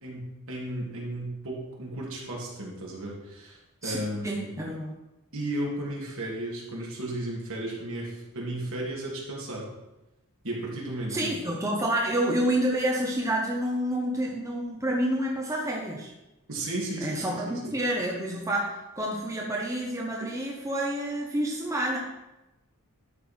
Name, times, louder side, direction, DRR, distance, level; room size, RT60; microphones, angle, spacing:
voice 1, 0.0-4.5 5.3-9.6 10.4-11.3 16.5-17.7, right 1 dB, 65° right, -3 dB, 2.8 m, -34 dB
voice 2, 4.2-4.9 11.1-16.1 17.0-18.7 19.0-22.0, right 1 dB, 15° right, -1 dB, 1.0 m, -28 dB
12.0 x 5.6 x 4.4 m, 0.99 s
head